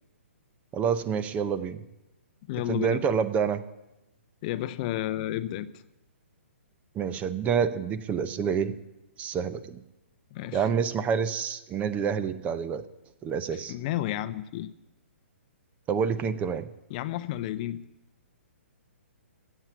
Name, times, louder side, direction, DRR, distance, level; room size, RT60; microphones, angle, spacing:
voice 1, 0.7-1.8 2.7-3.6 7.0-8.8 9.2-9.8 10.5-12.8 13.2-13.7 15.9-16.7, right 7 dB, 20° right, 14 dB, 0.6 m, -27 dB
voice 2, 2.5-3.0 4.4-5.7 10.3-10.7 13.5-14.7 16.9-17.8, left 13 dB, 35° left, 13 dB, 0.6 m, -31 dB
15.0 x 7.8 x 7.0 m, 0.95 s
hypercardioid pair, 130°, 7 cm